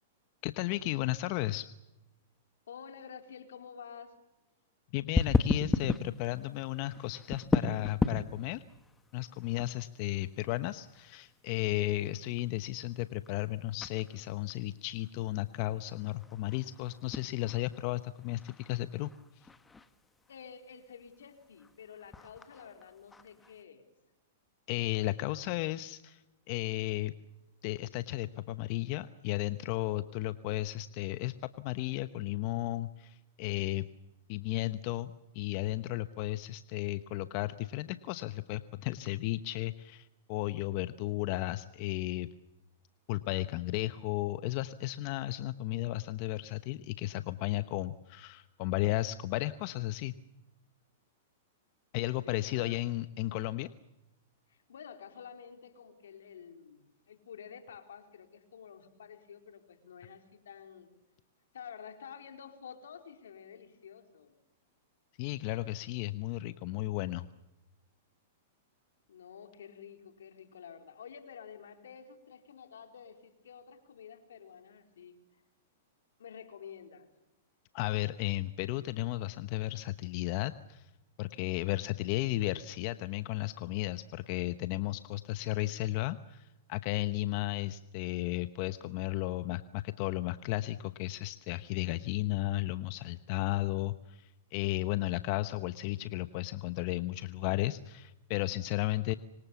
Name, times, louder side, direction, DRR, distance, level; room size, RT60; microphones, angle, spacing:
voice 1, 0.4-1.7 4.9-8.6 9.1-19.1 19.4-19.5 24.7-26.2 26.5-27.1 27.6-33.9 34.3-42.3 43.1-50.1 51.9-53.7 65.2-67.3 77.7-80.9 81.2-99.1, left 17 dB, 50° left, 12 dB, 1.0 m, -34 dB
voice 2, 2.7-4.1 20.3-23.8 52.0-52.8 54.5-60.9 61.5-64.4 69.1-75.4 76.2-77.1, left 7 dB, 80° left, 6 dB, 4.1 m, -50 dB
sound 1, 5.1-23.6, left 3 dB, 10° left, 1.5 m, -37 dB
26.0 x 24.5 x 7.1 m, 0.98 s
hypercardioid pair, 125°, 0 cm